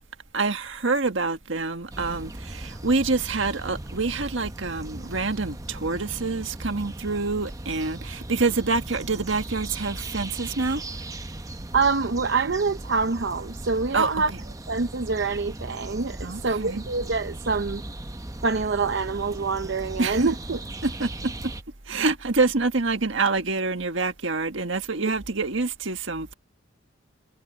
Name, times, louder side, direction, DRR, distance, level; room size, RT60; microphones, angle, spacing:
voice 1, 0.3-10.8 13.9-14.1 16.2-16.8 20.0-20.3 20.8-21.5 21.8-26.3, right 3 dB, 75° right, 1.6 m, -26 dB
sound 1, 1.9-21.6, right 1 dB, 15° right, 0.8 m, -38 dB
voice 2, 11.7-14.3 14.7-17.8 18.4-20.6, right 4 dB, 60° right, 0.7 m, -25 dB
head